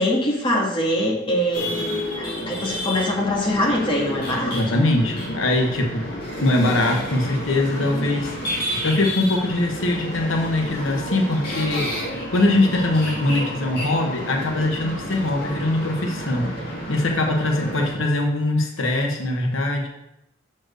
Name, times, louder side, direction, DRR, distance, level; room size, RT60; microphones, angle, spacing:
voice 1, 0.0-4.5, left 1 dB, 25° left, -2 dB, 1.6 m, -23 dB
sound 1, 1.5-18.0, equal, 50° left, 2.3 m, -30 dB
voice 2, 4.4-6.0 6.4-8.3 8.8-19.9, left 2 dB, 85° left, 2 dB, 1.0 m, -22 dB
6.4 x 4.4 x 6.3 m, 0.86 s
head